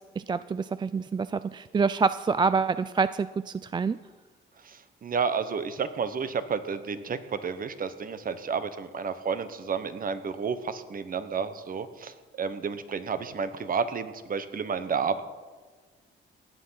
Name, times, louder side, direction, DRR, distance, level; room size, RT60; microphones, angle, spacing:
voice 1, 0.0-4.0, right 5 dB, 25° right, 14 dB, 0.3 m, -27 dB
voice 2, 4.6-15.2, right 6 dB, 45° right, 11 dB, 1.1 m, -31 dB
16.5 x 9.5 x 5.8 m, 1.4 s
cardioid pair, 90°, 20 cm